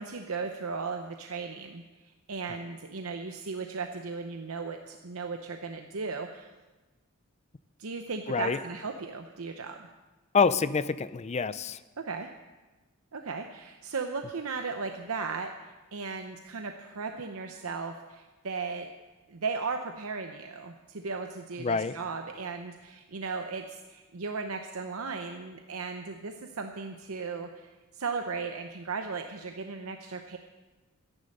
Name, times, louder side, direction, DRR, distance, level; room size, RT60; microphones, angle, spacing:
voice 1, 0.0-6.5 7.8-9.9 12.0-12.3 13.1-18.9 19.3-30.4, right 4 dB, 70° right, 5 dB, 0.8 m, -36 dB
voice 2, 8.3-8.6 10.3-11.8 21.6-21.9, left 5 dB, 30° left, 15 dB, 0.4 m, -26 dB
13.0 x 11.0 x 6.5 m, 1.2 s
head